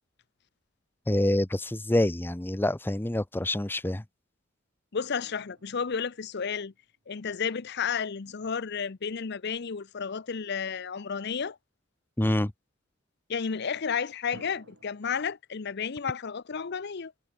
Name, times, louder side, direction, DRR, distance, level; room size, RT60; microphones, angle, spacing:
voice 1, 1.1-4.0 12.2-12.5, left 1 dB, 10° left, 0.6 m, -26 dB
voice 2, 4.9-6.7 7.1-11.6 13.3-17.1, left 6 dB, 55° left, 0.7 m, -32 dB
sound 1, 5.2-7.3 14.3-15.0, right 1 dB, 65° right, 4.7 m, -55 dB
head